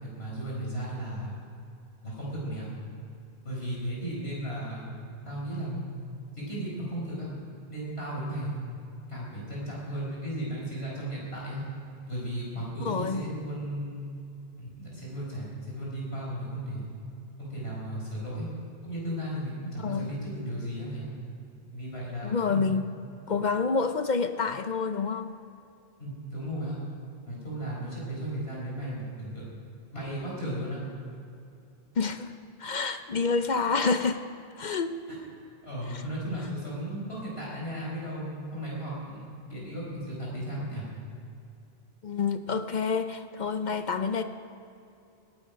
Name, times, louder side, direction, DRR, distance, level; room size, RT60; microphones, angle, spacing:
voice 1, 0.0-1.4 2.0-2.7 3.4-4.9 5.2-5.8 6.3-7.3 7.7-8.6 9.1-11.6 12.1-14.1 14.6-16.9 17.4-18.5 18.8-21.1 21.7-22.6 26.0-26.8 27.3-29.5 29.9-30.8 35.1-35.2 35.6-40.8, right 1 dB, 80° left, -5 dB, 5.1 m, -35 dB
voice 2, 12.8-13.2 19.8-20.1 22.2-22.9 23.3-25.3 32.0-32.3 32.6-34.2 34.6-35.0 35.9-36.0 42.0-44.2, left 4 dB, 50° left, 9 dB, 0.7 m, -28 dB
19.5 x 12.5 x 5.1 m, 2.6 s
omnidirectional pair, 1.0 m